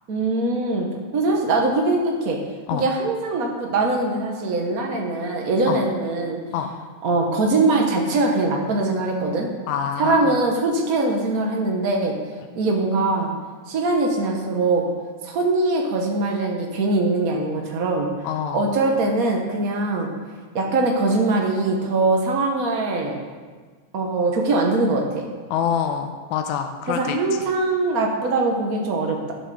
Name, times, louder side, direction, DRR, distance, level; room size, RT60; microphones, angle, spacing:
voice 1, 0.1-2.4 2.7-6.4 7.0-9.5 10.0-12.1 12.6-13.3 13.7-14.8 15.2-18.1 18.5-20.1 20.5-23.1 23.9-25.3 26.9-29.3, right 2 dB, 90° right, 1 dB, 0.7 m, -22 dB
voice 2, 9.7-10.3 18.2-18.7 25.5-27.4, left 8 dB, 80° left, 6 dB, 2.0 m, -26 dB
11.0 x 8.1 x 6.2 m, 1.5 s
omnidirectional pair, 3.6 m